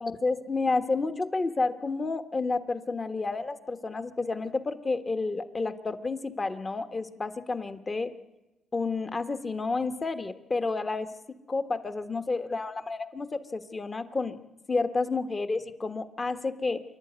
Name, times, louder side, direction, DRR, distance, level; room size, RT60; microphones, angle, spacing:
voice 1, 0.0-8.1 8.7-11.1 11.5-14.4 14.7-16.8, left 3 dB, 30° left, 9 dB, 1.4 m, -30 dB
26.5 x 11.5 x 9.4 m, 1.0 s
cardioid pair, 90°, 0 cm